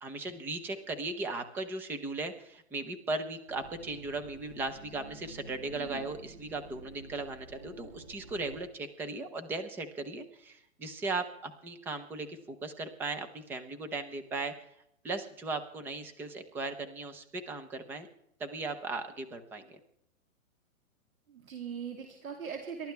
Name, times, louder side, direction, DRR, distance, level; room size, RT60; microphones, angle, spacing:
voice 1, 0.0-14.5 15.0-18.1 18.4-19.8, right 3 dB, 5° right, 7 dB, 0.6 m, -37 dB
sound 1, 3.5-8.6, right 2 dB, 50° right, 4.8 m, -51 dB
voice 2, 5.7-6.1 21.3-22.9, right 7 dB, 85° right, 3 dB, 3.0 m, -40 dB
28.5 x 13.0 x 3.4 m, 0.75 s
hypercardioid pair, 150°, 41 cm